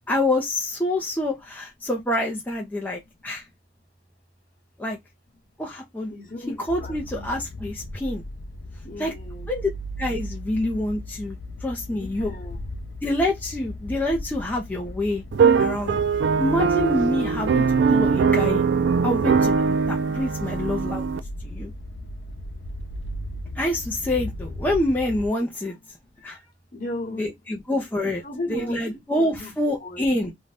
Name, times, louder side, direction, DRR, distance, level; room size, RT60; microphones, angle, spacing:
voice 1, 0.1-3.4 4.8-5.0 5.6-6.1 6.6-8.2 9.0-9.1 9.5-9.7 10.0-12.3 13.0-15.2 15.6-16.0 16.4-18.7 19.0-21.1 21.4-21.7 23.6-25.8 26.2-26.4 27.2-28.2 28.5-30.3, left 1 dB, 10° left, 0.5 m, -26 dB
voice 2, 6.1-7.2 8.8-9.5 11.9-12.6 26.7-27.3 28.0-28.8 29.2-29.5 29.8-30.3, left 2 dB, 45° left, 1.0 m, -36 dB
sound 1, 6.7-25.3, left 1 dB, 70° left, 0.4 m, -37 dB
sound 2, 15.3-21.2, right 5 dB, 85° right, 0.3 m, -21 dB
2.6 x 2.2 x 3.2 m
head